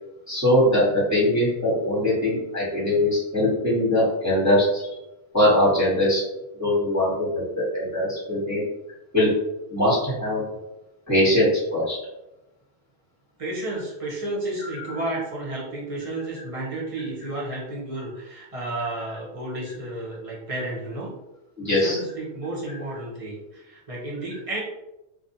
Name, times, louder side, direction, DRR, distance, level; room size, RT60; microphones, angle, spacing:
voice 1, 0.3-4.8 5.3-6.2 6.6-8.6 9.1-9.3 9.7-10.4 11.1-12.0 14.6-14.9 21.6-22.0, left 1 dB, 15° left, -8 dB, 1.2 m, -21 dB
voice 2, 13.4-21.2 21.7-24.6, right 1 dB, 35° right, -5 dB, 0.7 m, -32 dB
2.4 x 2.2 x 2.6 m, 0.95 s
omnidirectional pair, 1.1 m